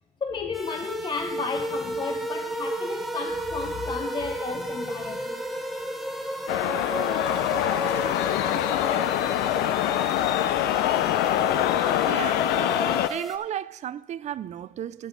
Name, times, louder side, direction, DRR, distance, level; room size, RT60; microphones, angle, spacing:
voice 1, 0.2-5.4 7.1-7.5, left 5 dB, 25° left, 0.6 m, -33 dB
sound 1, 0.5-13.4, right 1 dB, ahead, 0.9 m, -32 dB
sound 2, 6.5-13.1, left 13 dB, 85° left, 0.4 m, -24 dB
voice 2, 12.1-12.5 13.1-15.1, right 10 dB, 45° right, 0.4 m, -33 dB
13.5 x 8.2 x 3.9 m
cardioid pair, 110°, 17 cm